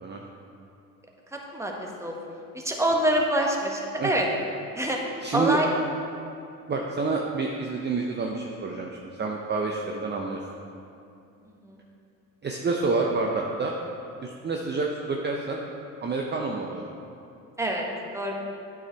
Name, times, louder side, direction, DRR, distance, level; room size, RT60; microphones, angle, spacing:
voice 1, 1.3-2.1 2.5-4.3 4.7-5.0 5.3-5.7 11.7-11.8 17.6-17.9 18.1-18.3, right 1 dB, 10° right, 0 dB, 1.3 m, -26 dB
voice 2, 5.2-5.6 6.7-8.9 9.2-10.4 12.4-13.7 14.2-15.6 16.0-16.9, right 4 dB, 30° right, 0 dB, 0.7 m, -28 dB
8.6 x 4.9 x 4.6 m, 2.6 s
supercardioid pair, 70°, 37 cm